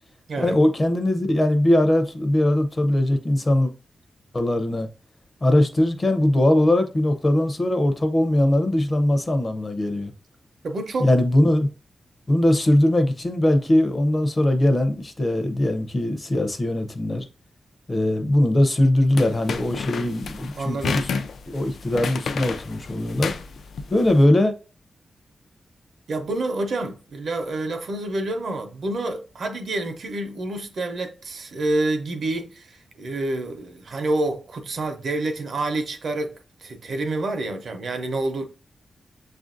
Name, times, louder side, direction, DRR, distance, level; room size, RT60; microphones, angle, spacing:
voice 1, 0.4-3.7 4.3-4.9 5.4-10.1 11.0-11.7 12.3-17.2 17.9-21.1 21.5-23.3 23.9-24.5, left 1 dB, 25° left, 0.5 m, -20 dB
voice 2, 10.6-11.1 20.5-21.0 26.1-38.4, right 2 dB, 65° right, 0.7 m, -28 dB
sound 1, 19.2-24.2, left 5 dB, 85° left, 0.4 m, -31 dB
6.8 x 2.5 x 2.5 m
wide cardioid pair, 140°, 0 cm